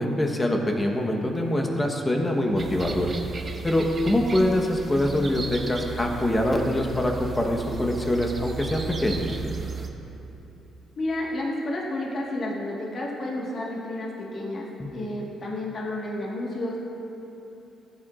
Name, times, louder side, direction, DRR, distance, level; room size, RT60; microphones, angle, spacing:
voice 1, 0.0-3.1 3.6-9.3, left 1 dB, 20° left, 2 dB, 1.0 m, -24 dB
sound 1, 2.6-9.9, right 5 dB, 35° right, 0.8 m, -35 dB
voice 2, 11.0-16.8, left 1 dB, 50° left, -3 dB, 1.5 m, -31 dB
14.5 x 8.9 x 2.5 m, 3.0 s
cardioid pair, 90°, 0 cm